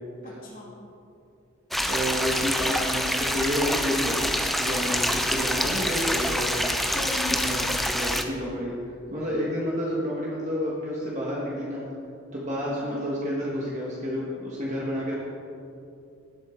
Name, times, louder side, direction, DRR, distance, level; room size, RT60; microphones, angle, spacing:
voice 1, 0.2-0.8 6.9-7.7 12.7-13.1, left 2 dB, 45° left, -5 dB, 2.8 m, -38 dB
sound 1, 1.7-8.2, equal, ahead, 0.5 m, -26 dB
voice 2, 1.9-6.7 7.4-8.7 9.1-11.9 12.3-15.1, equal, 35° right, -5 dB, 1.5 m, -30 dB
18.0 x 7.9 x 3.8 m, 2.6 s
head